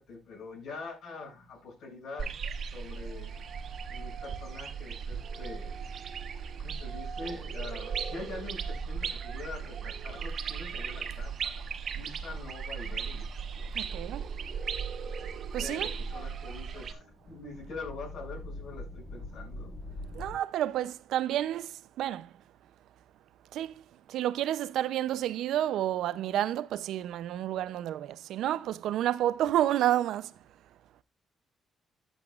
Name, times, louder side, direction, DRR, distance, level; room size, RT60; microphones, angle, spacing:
voice 1, 0.0-2.3 2.7-3.4 3.9-5.7 6.6-11.7 11.9-13.3 15.6-19.7, left 3 dB, 70° left, 6.7 m, -44 dB
sound 1, 2.2-16.9, right 6 dB, 60° right, 1.1 m, -37 dB
voice 2, 13.7-14.3 15.5-15.9 20.1-22.3 23.5-23.7 24.1-30.3, right 12 dB, 80° right, 0.6 m, -30 dB
sound 2, 16.7-20.4, left 1 dB, 40° left, 5.1 m, -43 dB
14.0 x 8.1 x 2.4 m
cardioid pair, 90°, 0 cm